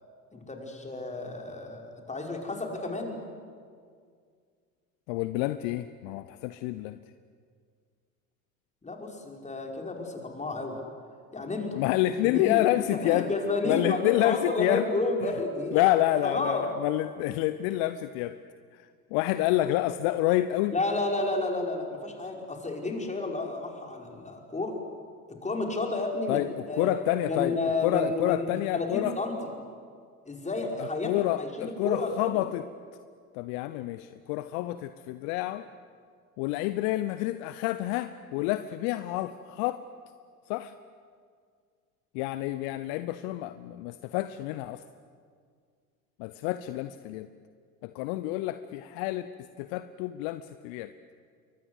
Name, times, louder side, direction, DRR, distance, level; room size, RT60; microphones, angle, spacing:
voice 1, 0.3-3.2 8.8-10.8 11.3-11.8 12.2-12.6 12.9-15.8 16.2-16.7 20.7-24.8 25.3-26.9 27.3-28.5 28.7-29.4 30.3-31.1 31.4-32.4, left 2 dB, 15° left, 2 dB, 5.3 m, -31 dB
voice 2, 5.1-7.0 11.7-13.3 13.6-14.9 15.2-15.3 15.7-18.4 18.7-20.7 26.3-27.6 27.8-29.2 30.8-32.7 33.3-35.7 36.4-39.8 40.5-40.7 42.1-44.8 46.2-47.3 47.8-49.3 49.6-50.9, left 15 dB, 55° left, 13 dB, 0.9 m, -28 dB
29.0 x 23.5 x 8.2 m, 2.1 s
figure-of-eight pair, 70°, 44 cm